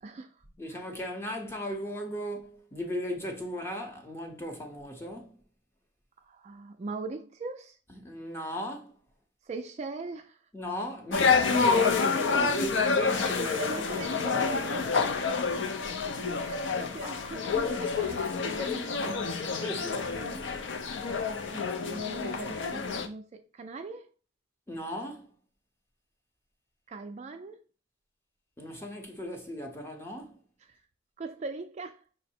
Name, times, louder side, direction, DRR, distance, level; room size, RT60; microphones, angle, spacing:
voice 1, 0.0-0.9 6.2-7.8 9.4-10.5 13.6-14.9 16.4-20.5 21.3-24.1 26.9-27.6 30.6-30.8 31.2-32.0, right 3 dB, 35° right, 0.3 m, -41 dB
voice 2, 0.6-5.4 7.9-9.0 10.5-13.8 14.9-15.1 17.5-17.7 19.6-20.0 24.7-25.3 28.6-30.4, equal, 15° left, 0.7 m, -37 dB
sound 1, 11.1-23.1, left 5 dB, 70° left, 0.5 m, -28 dB
5.4 x 2.0 x 4.3 m
head